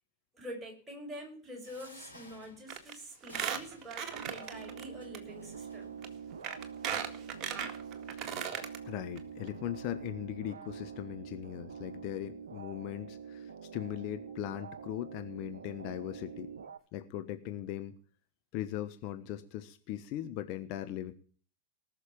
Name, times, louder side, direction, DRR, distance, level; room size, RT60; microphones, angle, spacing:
voice 1, 0.3-6.0, equal, 10° right, -1 dB, 5.4 m, -46 dB
sound 1, 1.6-6.1 6.8-6.9 7.1-7.3, left 1 dB, 90° left, 5.5 m, -56 dB
Squeak, 2.7-2.9 3.2-4.8 5.1-5.2 6.0-6.1 6.4-8.8 9.2-9.3 9.5-9.6, right 8 dB, 30° right, 2.0 m, -36 dB
sound 2, 4.1-16.8, right 7 dB, 65° right, 0.9 m, -45 dB
voice 2, 8.8-16.5 16.9-17.9 18.5-21.1, left 12 dB, 45° left, 8 dB, 1.1 m, -39 dB
19.0 x 6.6 x 8.6 m, 0.44 s
figure-of-eight pair, 90°, 0 cm